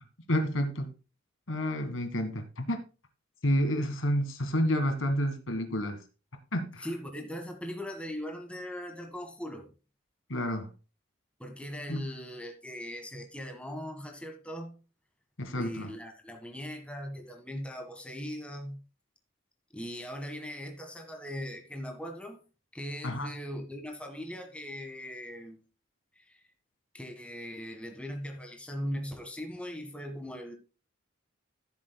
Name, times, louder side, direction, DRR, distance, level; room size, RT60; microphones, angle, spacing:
voice 1, 0.3-0.9 1.5-2.8 3.4-6.0 6.5-6.9 10.3-10.7 11.9-12.0 15.4-15.9 23.0-23.3, equal, 85° left, 7 dB, 1.7 m, -29 dB
voice 2, 6.8-9.7 11.4-14.7 15.5-18.8 19.7-22.4 22.7-25.6 26.2-26.4 26.9-30.5, equal, 5° left, 4 dB, 1.6 m, -39 dB
15.0 x 7.4 x 2.3 m, 0.32 s
head